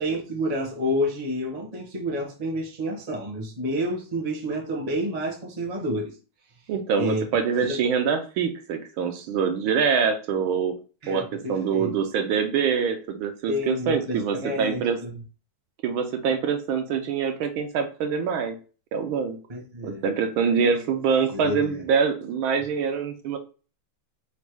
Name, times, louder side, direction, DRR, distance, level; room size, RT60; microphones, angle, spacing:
voice 1, 0.0-6.1 7.0-7.2 7.6-7.8 11.0-11.9 13.5-15.1 19.5-20.0 20.6-20.7 21.3-21.8, equal, 30° right, 0.7 m, -29 dB
voice 2, 6.7-10.8 11.1-15.0 15.8-18.6 18.9-19.4 19.8-23.4, right 6 dB, 80° right, 1.4 m, -25 dB
4.1 x 2.2 x 4.6 m
omnidirectional pair, 2.3 m